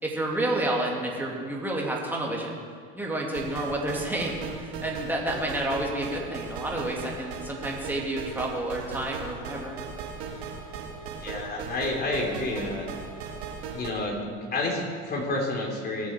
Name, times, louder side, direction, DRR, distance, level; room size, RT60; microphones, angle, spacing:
voice 1, 0.0-2.6 2.9-9.7, right 1 dB, 5° right, -3 dB, 2.8 m, -30 dB
sound 1, 3.3-13.9, right 5 dB, 75° right, 1.8 m, -38 dB
voice 2, 11.2-12.9 13.7-16.1, left 2 dB, 30° left, -1 dB, 3.5 m, -30 dB
20.0 x 7.3 x 4.6 m, 2.1 s
supercardioid pair, 100°, 32 cm